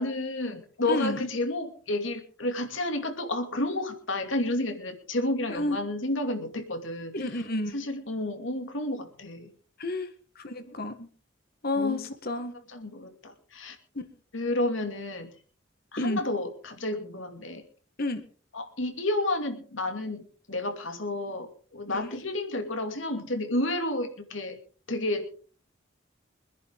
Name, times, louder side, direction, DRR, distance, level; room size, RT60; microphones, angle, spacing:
voice 1, 0.0-7.1 7.7-9.5 11.8-12.0 12.7-13.8 14.3-15.3 15.9-17.6 18.5-24.6 24.9-25.3, left 2 dB, 80° left, 6 dB, 2.5 m, -31 dB
voice 2, 0.9-1.2 5.5-5.8 7.1-7.8 9.8-10.1 10.4-11.1 11.6-12.5 14.0-14.1 16.0-16.2 18.0-18.2 21.9-22.0, left 2 dB, 50° left, 8 dB, 1.9 m, -30 dB
24.5 x 10.5 x 3.7 m, 0.43 s
head